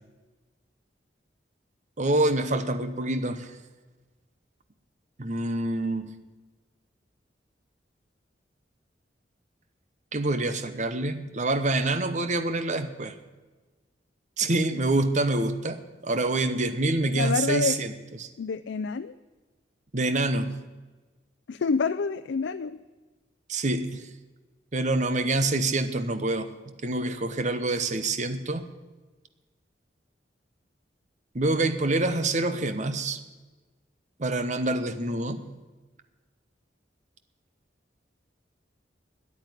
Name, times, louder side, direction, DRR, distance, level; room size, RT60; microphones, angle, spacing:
voice 1, 2.0-3.5 5.2-6.1 10.1-13.1 14.4-15.8 16.0-17.9 18.2-18.3 19.9-20.6 23.5-24.0 24.7-26.5 26.8-28.6 31.3-33.2 34.2-35.4, right 2 dB, 40° right, 10 dB, 0.9 m, -26 dB
voice 2, 17.2-17.8 18.4-19.1 21.5-22.8, left 5 dB, 90° left, 11 dB, 0.4 m, -27 dB
9.8 x 9.1 x 9.7 m, 1.3 s
head